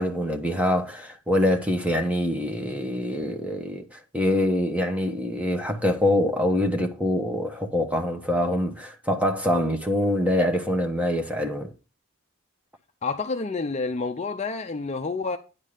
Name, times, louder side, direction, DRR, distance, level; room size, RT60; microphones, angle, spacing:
voice 1, 0.0-11.7, left 1 dB, 5° right, 1.0 m, -25 dB
voice 2, 13.0-15.4, left 4 dB, 30° left, 0.5 m, -29 dB
9.9 x 3.7 x 6.5 m
head